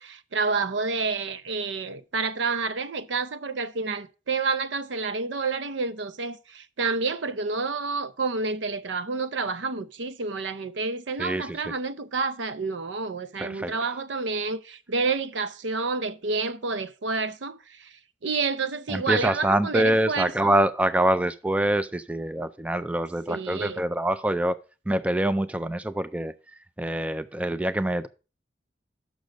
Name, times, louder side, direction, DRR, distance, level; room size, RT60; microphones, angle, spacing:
voice 1, 0.0-17.9 18.2-20.5 23.3-23.8, right 4 dB, 80° right, 0.6 m, -29 dB
voice 2, 11.2-11.7 13.4-14.0 18.9-24.6 24.9-28.1, right 1 dB, 5° right, 0.3 m, -25 dB
6.4 x 6.2 x 5.1 m
head